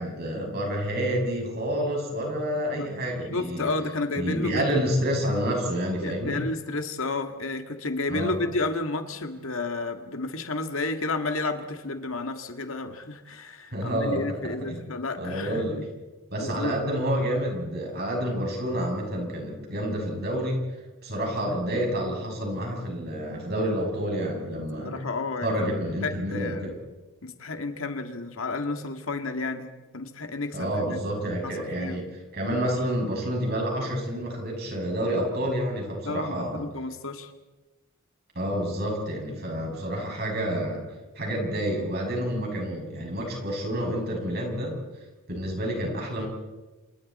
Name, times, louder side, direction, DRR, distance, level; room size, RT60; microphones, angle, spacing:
voice 1, 0.0-3.7 4.1-6.5 8.1-8.3 13.7-14.4 14.7-14.8 15.2-15.8 16.3-20.6 21.0-25.0 25.4-26.7 30.5-32.1 32.3-36.6 38.3-40.8 41.1-44.8 45.3-46.3, equal, 45° right, 0 dB, 6.8 m, -29 dB
voice 2, 3.3-4.8 6.0-15.8 16.4-17.0 24.8-25.7 26.0-26.8 27.2-31.0 31.4-32.1 36.1-37.3, left 3 dB, 70° left, 6 dB, 2.0 m, -31 dB
28.0 x 27.5 x 4.3 m, 1.2 s
head